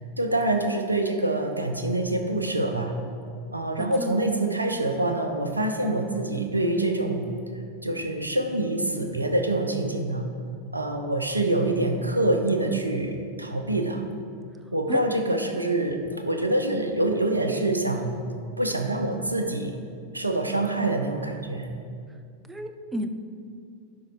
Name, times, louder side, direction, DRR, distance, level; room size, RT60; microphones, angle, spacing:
voice 1, 0.2-2.9 3.5-7.3 7.8-10.2 10.7-14.0 14.7-18.2 18.6-19.8 20.1-21.7, right 2 dB, 85° right, 5 dB, 0.7 m, -25 dB
voice 2, 3.8-4.1 14.9-15.1 22.5-23.1, right 1 dB, 10° right, 7 dB, 0.6 m, -33 dB
11.5 x 4.7 x 4.3 m, 2.4 s
figure-of-eight pair, 90°, 0 cm